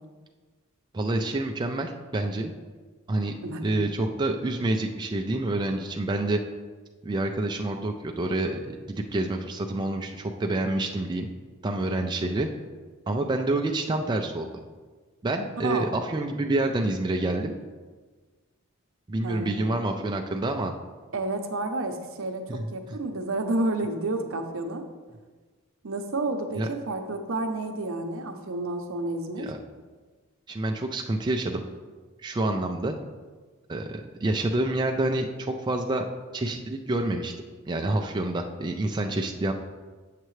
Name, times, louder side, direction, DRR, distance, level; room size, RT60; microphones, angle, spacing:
voice 1, 0.9-2.5 3.1-3.3 3.6-6.4 7.0-11.3 11.6-12.5 13.1-14.5 15.2-17.5 19.1-20.7 22.5-22.7 26.6-26.7 29.4-29.6 30.5-31.6 32.2-32.9 33.7-36.1 36.3-37.3 37.7-39.5, right 2 dB, 20° right, 3 dB, 0.4 m, -27 dB
voice 2, 15.6-15.9 19.2-19.7 21.1-24.8 25.8-29.5, right 2 dB, 70° right, 5 dB, 0.7 m, -30 dB
7.5 x 6.6 x 3.2 m, 1.4 s
head